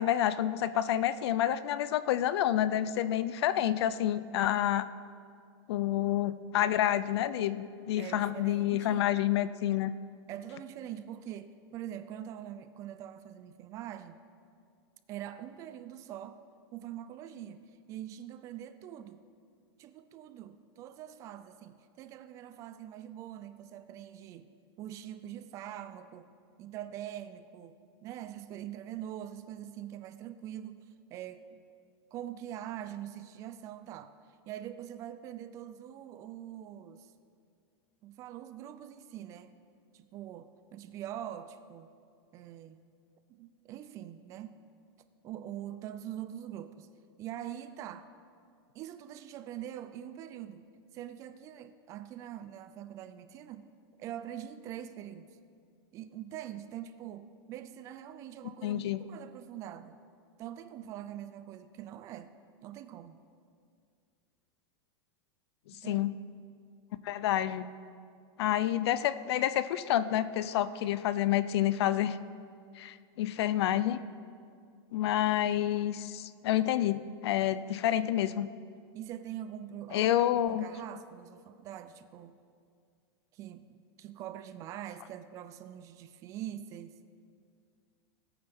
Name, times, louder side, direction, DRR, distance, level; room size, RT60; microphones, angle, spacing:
voice 1, 0.0-4.9 5.7-9.9 58.6-59.0 65.8-66.1 67.0-67.7 68.4-72.2 72.8-74.0 74.9-78.5 79.9-80.7, left 12 dB, 75° left, 15 dB, 0.5 m, -28 dB
voice 2, 8.0-9.1 10.3-14.2 15.1-16.4 16.7-17.6 17.9-19.2 19.8-24.5 24.8-26.3 26.6-27.8 28.0-30.8 31.1-31.6 32.1-34.1 34.5-37.1 38.0-39.5 39.9-41.9 42.3-42.8 43.3-44.5 45.2-46.9 47.2-48.1 48.7-50.6 50.9-53.7 54.0-55.3 55.9-60.0 60.4-62.3 62.6-63.2 65.7-66.0 78.9-80.1 80.5-82.4 83.3-83.7 84.0-87.0, right 11 dB, 25° right, 11 dB, 0.3 m, -43 dB
18.5 x 8.8 x 3.6 m, 2.3 s
supercardioid pair, 175°, 14 cm